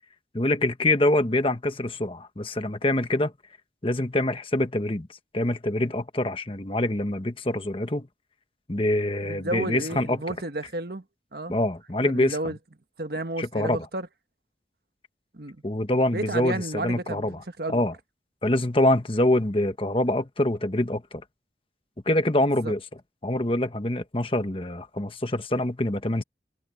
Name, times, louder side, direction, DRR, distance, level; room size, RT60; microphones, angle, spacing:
voice 1, 0.3-3.3 3.8-5.1 5.3-8.1 8.7-10.4 11.5-12.5 13.4-13.8 15.6-17.4 17.7-17.9 18.4-21.2 22.1-22.8 23.2-26.2, left 1 dB, 30° left, 1.3 m, -25 dB
voice 2, 9.2-11.0 11.3-11.5 12.0-12.6 13.0-14.1 15.3-15.6 16.1-17.9 22.4-22.7, right 2 dB, 60° right, 1.4 m, -32 dB
head